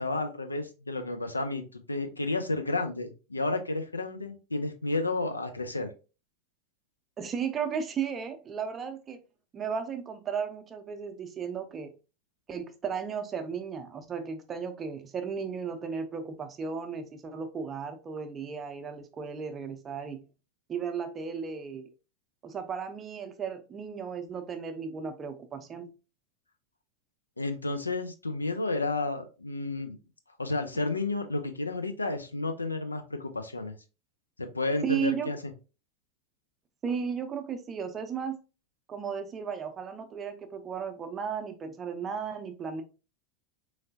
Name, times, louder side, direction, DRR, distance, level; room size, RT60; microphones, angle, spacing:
voice 1, 0.0-5.9 27.4-30.0 30.4-33.8 34.4-35.5, left 2 dB, 80° left, 0.4 m, -31 dB
voice 2, 7.2-9.2 9.5-11.9 12.5-20.2 20.7-21.9 22.4-25.9 34.8-35.3 36.8-38.4 38.9-42.8, right 6 dB, 25° right, 0.6 m, -35 dB
3.6 x 3.2 x 2.6 m
figure-of-eight pair, 85°, 0 cm